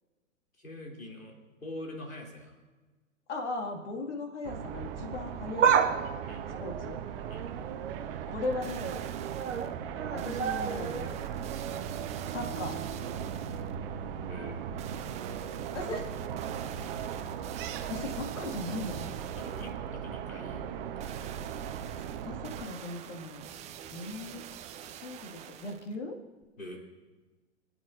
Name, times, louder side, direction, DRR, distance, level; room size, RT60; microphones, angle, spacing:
voice 1, 0.6-1.3 1.6-2.6 6.3-6.4 7.3-7.4 14.3-14.6 19.3-21.3 26.6-26.8, left 1 dB, 90° left, -1 dB, 3.3 m, -44 dB
voice 2, 3.3-5.8 6.6-7.0 8.3-9.0 10.1-11.1 12.3-12.8 15.7-16.1 17.9-19.1 22.0-23.4 23.9-24.5 24.9-26.2, left 2 dB, 60° left, 3 dB, 2.1 m, -38 dB
sound 1, 4.4-22.6, right 8 dB, 45° right, 1.0 m, -38 dB
sound 2, 5.4-8.2 8.6-9.0 9.3-13.3 13.6-13.7 14.7-14.8, right 7 dB, 65° right, 1.1 m, -32 dB
sound 3, 8.4-9.7 10.2-13.7 14.8-19.8 21.0-26.0 26.4-26.5, right 10 dB, 15° right, 0.6 m, -46 dB
26.0 x 8.8 x 2.6 m, 1.3 s
figure-of-eight pair, 110°, 39 cm